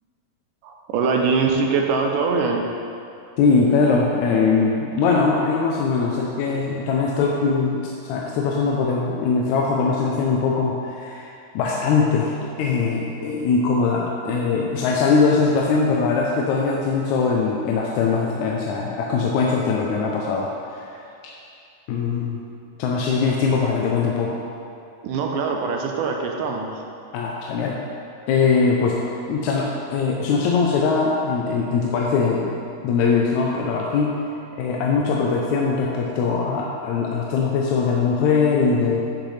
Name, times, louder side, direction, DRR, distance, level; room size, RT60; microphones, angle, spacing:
voice 1, 0.6-2.7 25.0-26.8, right 4 dB, 80° right, 1 dB, 2.2 m, -23 dB
voice 2, 3.4-12.3 12.6-20.9 21.9-22.4 22.8-24.4 27.1-27.8 28.3-29.0 29.3-32.5 32.8-34.2 34.6-39.0, left 4 dB, 75° left, -2 dB, 1.8 m, -21 dB
10.0 x 6.5 x 3.2 m, 2.5 s
omnidirectional pair, 3.8 m